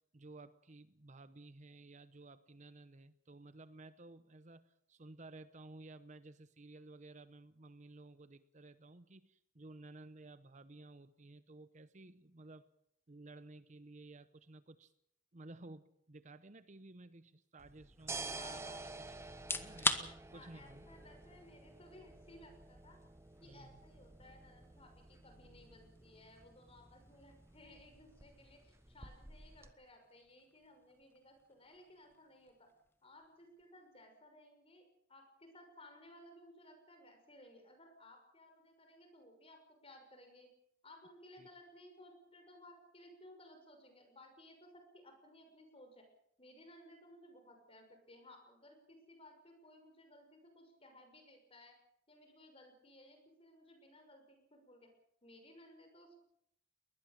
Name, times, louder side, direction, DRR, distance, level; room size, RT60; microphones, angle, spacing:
voice 1, 0.1-12.7 13.1-14.9 15.3-19.0 19.6-20.8 23.4-23.8 41.4-41.5, right 2 dB, 40° right, 13 dB, 0.9 m, -55 dB
sound 1, 17.6-29.7, right 3 dB, 15° right, 1.4 m, -51 dB
voice 2, 18.3-18.8 20.3-23.0 23.4-32.7 33.0-40.5 40.8-46.1 46.4-51.8 52.1-54.9 55.2-56.2, left 1 dB, 30° left, 5 dB, 6.1 m, -59 dB
sound 2, 19.3-34.2, left 2 dB, 10° left, 1.3 m, -46 dB
22.0 x 20.0 x 7.5 m, 0.73 s
head